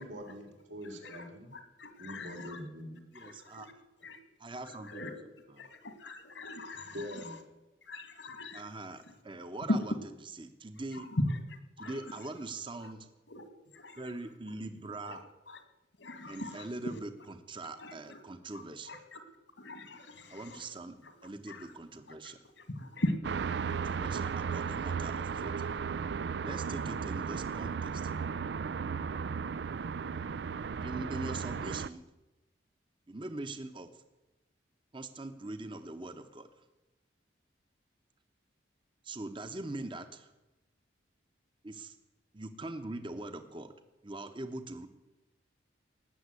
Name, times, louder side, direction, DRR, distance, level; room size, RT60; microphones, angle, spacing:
voice 1, 0.0-1.5 2.0-3.0 6.9-7.4, equal, 85° right, 1 dB, 3.7 m, -43 dB
voice 2, 1.5-2.6 3.1-3.7 4.0-4.2 4.6-5.1 5.6-7.4 7.8-8.7 9.1-9.2 9.7-9.8 10.9-12.3 12.8-12.9 13.3-13.5 13.7-14.0 15.0-15.2 15.5-15.6 16.0-16.9 17.8-18.2 18.5-19.2 19.6-20.7 21.0-21.1 21.5-21.7 22.2-22.3 22.6-23.2, left 1 dB, 75° left, 8 dB, 2.3 m, -38 dB
voice 3, 3.1-3.7 4.4-5.0 5.6-5.7 8.5-9.9 10.4-11.1 11.8-13.1 14.0-15.3 16.3-18.9 20.3-21.0 21.2-22.4 23.7-25.5 26.4-28.1 30.8-32.0 33.1-33.9 34.9-36.5 39.0-40.3 41.6-42.0 42.3-43.7 44.0-44.9, right 2 dB, 25° right, 9 dB, 0.9 m, -42 dB
sound 1, 23.2-31.9, right 6 dB, 65° right, 0.4 m, -35 dB
18.5 x 7.3 x 9.7 m, 1.0 s
head